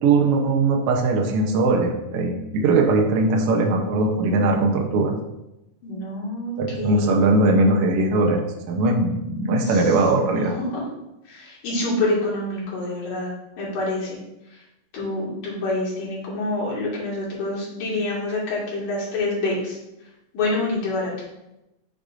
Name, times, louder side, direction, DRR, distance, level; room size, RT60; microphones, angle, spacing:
voice 1, 0.0-5.1 6.6-10.5, right 3 dB, 75° right, 1 dB, 1.3 m, -20 dB
voice 2, 5.8-7.2 9.7-9.8 10.2-10.8 11.3-13.3 13.6-14.2 14.9-19.8 20.3-21.1, left 2 dB, 80° left, -5 dB, 3.6 m, -27 dB
8.6 x 6.5 x 2.6 m, 0.91 s
omnidirectional pair, 3.8 m